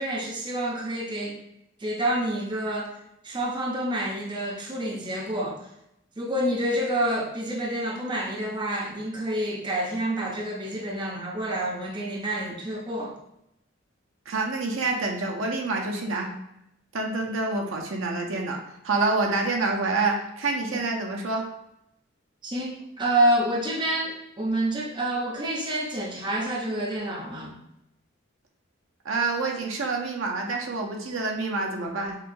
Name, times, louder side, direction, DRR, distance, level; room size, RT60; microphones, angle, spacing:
voice 1, 0.0-1.4 1.8-3.0 3.2-5.7 6.2-13.2 22.4-27.6, right 1 dB, 25° right, -2 dB, 0.5 m, -28 dB
voice 2, 14.3-16.3 16.9-21.5 29.0-32.2, right 3 dB, 80° right, 2 dB, 0.7 m, -27 dB
5.9 x 2.3 x 2.6 m, 0.81 s
head